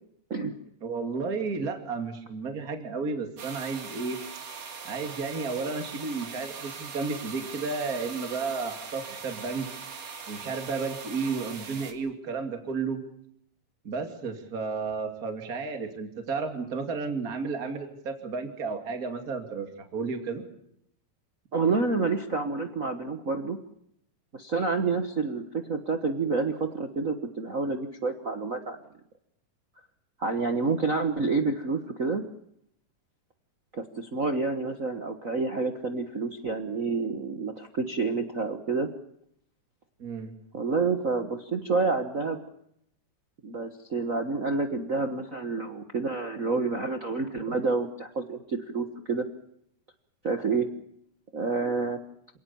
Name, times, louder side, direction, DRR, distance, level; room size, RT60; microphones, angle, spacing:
voice 1, 0.8-4.2 4.8-9.7 10.3-13.0 13.8-20.4 40.0-40.3, right 4 dB, 30° right, 6 dB, 2.7 m, -32 dB
sound 1, 3.4-11.9, right 5 dB, 55° right, 3.7 m, -41 dB
voice 2, 21.5-23.6 24.3-28.8 30.2-32.2 33.7-38.9 40.5-42.4 43.4-49.2 50.2-50.7 51.3-52.0, right 4 dB, 85° right, 6 dB, 0.7 m, -28 dB
27.5 x 18.5 x 7.1 m, 0.74 s
omnidirectional pair, 3.8 m